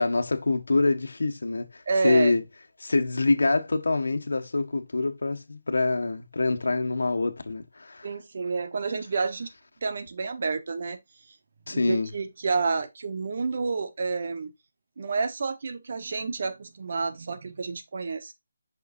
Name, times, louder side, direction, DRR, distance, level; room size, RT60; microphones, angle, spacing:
voice 1, 0.0-2.4 2.8-8.1 11.7-12.1, left 3 dB, 80° left, 1.4 m, -25 dB
voice 2, 1.9-2.4 8.0-9.5 9.8-11.0 11.3-11.4 11.7-14.5 15.0-18.3, right 4 dB, 45° right, 1.2 m, -29 dB
7.0 x 5.8 x 2.7 m
figure-of-eight pair, 170°, 0 cm